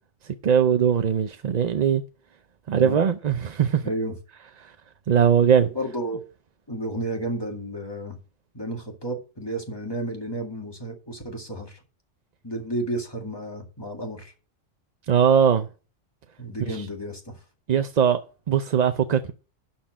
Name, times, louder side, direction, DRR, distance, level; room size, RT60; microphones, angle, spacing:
voice 1, 0.4-2.0 2.7-3.8 4.6-4.7 5.1-5.7 15.1-15.7 16.7-16.8 17.7-18.2 18.5-19.3, right 8 dB, 50° right, 0.5 m, -20 dB
voice 2, 3.8-4.1 5.7-6.2 6.7-8.2 8.5-11.8 12.4-14.3 16.4-17.3, right 1 dB, 20° left, 2.0 m, -32 dB
11.5 x 4.4 x 7.4 m
omnidirectional pair, 1.3 m